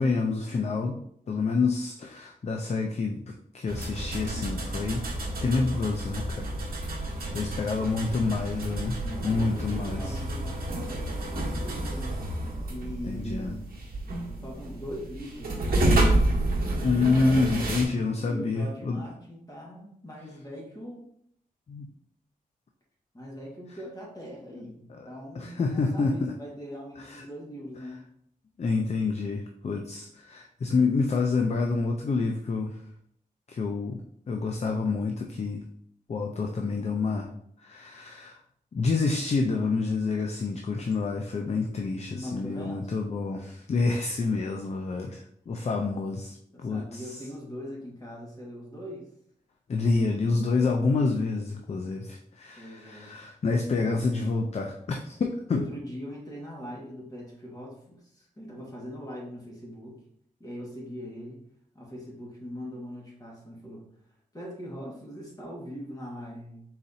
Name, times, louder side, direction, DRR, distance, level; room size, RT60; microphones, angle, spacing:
voice 1, 0.0-5.0 5.4-6.5 6.8-6.9 7.3-9.0 9.2-10.1 13.0-13.6 16.8-19.0 21.7-21.9 24.9-25.1 25.3-26.3 27.0-27.2 28.6-32.8 33.5-34.0 34.3-35.6 36.1-37.3 37.6-38.4 38.7-47.2 49.7-55.7, left 4 dB, 45° left, 2 dB, 0.4 m, -28 dB
sound 1, 3.7-17.8, right 1 dB, 80° right, 0.9 m, -30 dB
voice 2, 7.2-7.6 9.0-12.2 12.7-13.9 14.4-16.0 18.2-21.1 23.1-28.0 42.1-42.9 46.5-49.1 52.6-53.1 55.5-59.9 60.4-61.4 61.7-63.8 64.3-66.6, equal, 25° left, -4 dB, 1.6 m, -41 dB
4.1 x 4.0 x 2.7 m, 0.69 s
wide cardioid pair, 90°, 15 cm